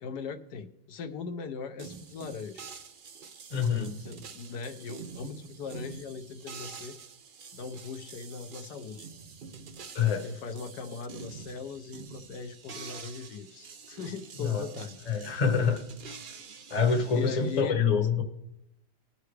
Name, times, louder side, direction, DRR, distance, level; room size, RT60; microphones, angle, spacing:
voice 1, 0.0-2.6 4.0-7.0 7.5-9.1 10.2-15.0 17.1-17.8, left 5 dB, 75° left, 6 dB, 1.3 m, -40 dB
sound 1, 1.8-17.6, right 5 dB, 80° right, 0.4 m, -47 dB
voice 2, 3.5-3.9 9.9-10.3 14.4-14.7 15.1-15.8 16.7-18.2, left 6 dB, 30° left, 4 dB, 0.9 m, -26 dB
19.5 x 6.9 x 3.3 m, 0.86 s
omnidirectional pair, 1.8 m